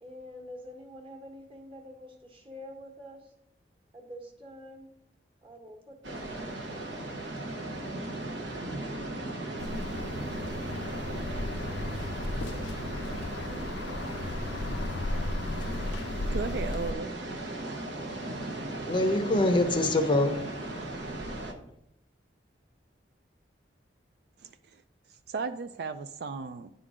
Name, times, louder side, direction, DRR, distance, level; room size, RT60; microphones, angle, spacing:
voice 1, 0.0-3.3 3.9-4.9 5.4-7.1, equal, 30° right, 1 dB, 1.3 m, -47 dB
sound 1, 6.0-21.5, right 1 dB, 80° right, 0.9 m, -37 dB
sound 2, 9.6-16.9, left 2 dB, 80° left, 0.5 m, -35 dB
voice 2, 16.3-17.1 24.4-24.8 25.1-26.7, right 4 dB, 60° right, 10 dB, 0.3 m, -35 dB
voice 3, 18.9-21.0, left 1 dB, 25° left, 7 dB, 0.6 m, -26 dB
9.8 x 3.8 x 4.9 m, 0.81 s
head